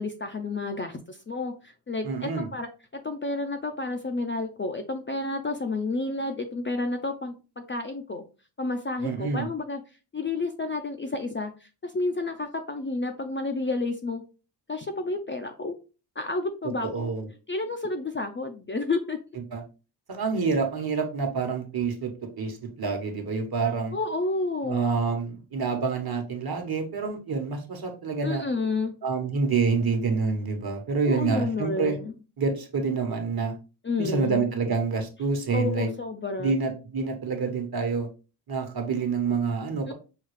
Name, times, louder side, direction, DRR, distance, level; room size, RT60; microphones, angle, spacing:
voice 1, 0.0-2.7 3.0-8.2 8.6-9.8 10.1-14.2 14.7-15.7 16.2-17.1 17.5-19.2 23.9-24.8 28.2-28.9 31.1-32.1 33.8-34.4 35.5-36.6 39.9-40.0, left 3 dB, 25° left, 5 dB, 0.4 m, -30 dB
voice 2, 2.0-2.5 9.0-9.5 16.8-17.3 19.5-19.6 20.1-22.1 22.4-24.0 24.6-28.4 29.0-32.0 32.4-33.6 34.0-35.9 36.4-38.1 38.5-39.9, right 4 dB, 50° right, 4 dB, 1.1 m, -27 dB
5.5 x 2.3 x 3.2 m, 0.32 s
wide cardioid pair, 100°, 48 cm